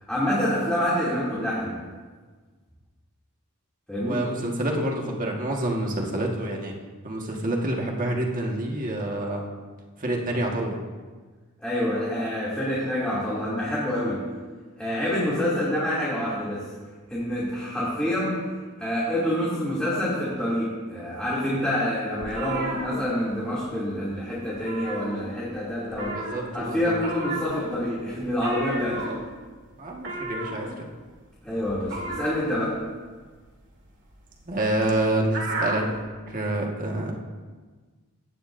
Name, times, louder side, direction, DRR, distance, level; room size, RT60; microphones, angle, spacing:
voice 1, 0.1-1.8 3.9-4.2 11.6-14.2 14.8-16.7 17.1-18.4 18.8-26.2 26.5-29.1 31.4-32.8, left 1 dB, 5° left, -9 dB, 2.7 m, -27 dB
voice 2, 4.0-6.7 7.0-9.5 10.0-10.8 26.0-26.9 29.8-30.7 34.5-35.8 36.3-37.1, right 1 dB, 40° right, 0 dB, 1.6 m, -27 dB
sound 1, 22.2-23.7 24.0-24.2 24.5-25.6 25.9-36.0, right 2 dB, 55° right, 2.3 m, -34 dB
17.0 x 11.0 x 2.7 m, 1.4 s
head